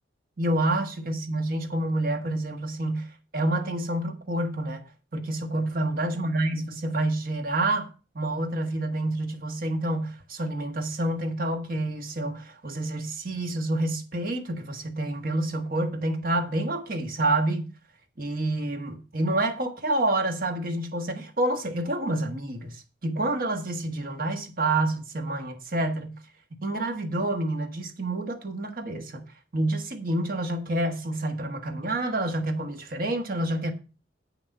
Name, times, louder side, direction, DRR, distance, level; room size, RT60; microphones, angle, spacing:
voice 1, 0.4-4.8 5.1-7.9 8.1-17.7 18.2-26.2 26.6-33.7, right 1 dB, 50° right, 1.4 m, -28 dB
8.7 x 6.2 x 5.4 m
head